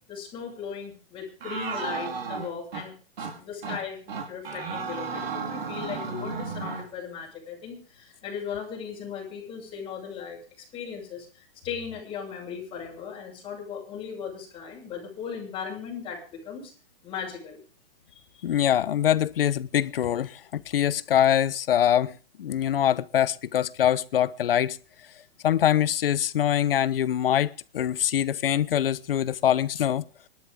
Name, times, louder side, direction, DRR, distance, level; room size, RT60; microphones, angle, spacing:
voice 1, 0.1-16.7 17.0-17.6 18.1-18.4, left 7 dB, 20° left, 7.7 m, -37 dB
sound 1, 1.4-2.9 3.2-3.3 3.6-3.8 4.1-6.9, right 5 dB, 80° right, 5.2 m, -33 dB
voice 2, 18.4-24.8 25.4-30.0, left 10 dB, 75° left, 1.1 m, -24 dB
26.0 x 12.0 x 3.7 m
hypercardioid pair, 145°, 29 cm